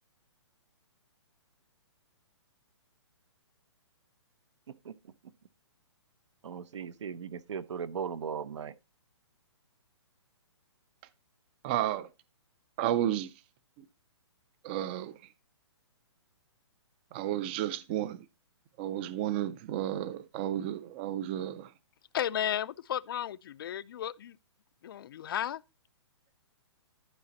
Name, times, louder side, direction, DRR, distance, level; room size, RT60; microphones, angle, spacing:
voice 1, 6.4-8.7, right 7 dB, 80° right, 0.7 m, -37 dB
voice 2, 11.6-12.1 12.8-13.3 14.6-15.1 17.1-18.3 18.8-21.7, right 12 dB, 20° right, 0.3 m, -32 dB
voice 3, 22.1-24.4 24.8-25.6, left 10 dB, 50° left, 0.4 m, -34 dB
11.0 x 5.0 x 4.0 m
hypercardioid pair, 155°, 15 cm